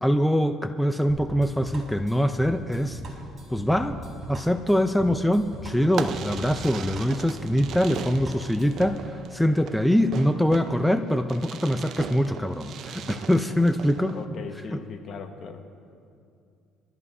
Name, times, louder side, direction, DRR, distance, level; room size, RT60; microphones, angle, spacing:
voice 1, 0.0-3.0 3.5-4.0 4.3-14.2 14.7-14.8, equal, 5° left, 7 dB, 0.5 m, -23 dB
sound 1, 1.1-9.0, right 1 dB, 35° right, 3.8 m, -39 dB
Fireworks, 5.9-14.2, right 7 dB, 60° right, 0.7 m, -38 dB
voice 2, 14.1-15.6, left 5 dB, 50° left, 5 dB, 1.3 m, -39 dB
24.5 x 13.5 x 2.7 m, 2.5 s
cardioid pair, 95°, 0 cm